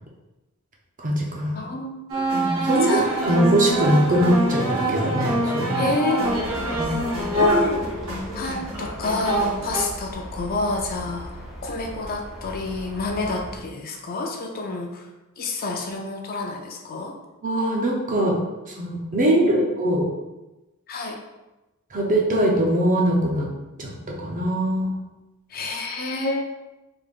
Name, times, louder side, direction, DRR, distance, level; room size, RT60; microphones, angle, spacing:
voice 1, 1.0-1.6 2.3-3.0 3.3-5.9 6.7-7.0 17.4-18.4 18.6-20.1 21.9-23.5 23.8-23.9 24.2-24.9, right 1 dB, 35° right, -1 dB, 0.7 m, -22 dB
voice 2, 1.5-2.0 2.6-3.3 5.7-6.4 8.3-11.3 11.6-15.1 15.4-17.1 19.3-19.7 20.9-21.2 25.5-26.4, left 3 dB, 40° left, 1 dB, 0.4 m, -29 dB
sound 1, 2.1-9.9, right 1 dB, 65° right, 0.9 m, -24 dB
sound 2, 6.2-13.6, equal, ahead, 1.0 m, -38 dB
3.6 x 3.4 x 2.4 m, 1.0 s
head